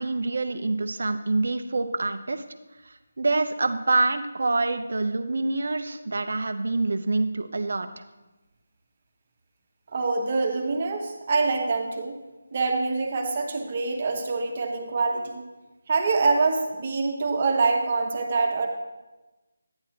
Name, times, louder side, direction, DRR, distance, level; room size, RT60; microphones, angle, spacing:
voice 1, 0.0-2.4 2.9-8.0, right 3 dB, 65° right, 9 dB, 0.7 m, -26 dB
voice 2, 9.9-12.2 12.5-15.4 15.9-18.7, right 3 dB, 40° right, 3 dB, 1.2 m, -25 dB
9.8 x 9.7 x 2.9 m, 1.1 s
figure-of-eight pair, 160°, 0 cm